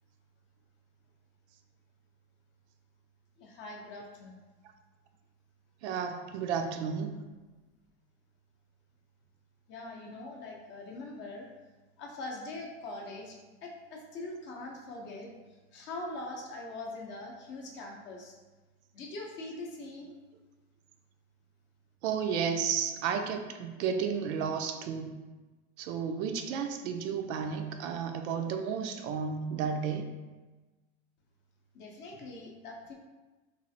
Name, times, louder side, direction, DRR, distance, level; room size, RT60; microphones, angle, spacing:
voice 1, 3.4-4.4 9.7-11.5 12.0-15.3 15.7-18.3 18.9-20.2 31.7-32.9, left 2 dB, 35° left, 0 dB, 0.5 m, -42 dB
voice 2, 5.8-7.2 22.0-25.2 25.8-30.1, right 6 dB, 85° right, 6 dB, 0.5 m, -32 dB
3.2 x 2.4 x 2.6 m, 1.2 s
supercardioid pair, 140°, 33 cm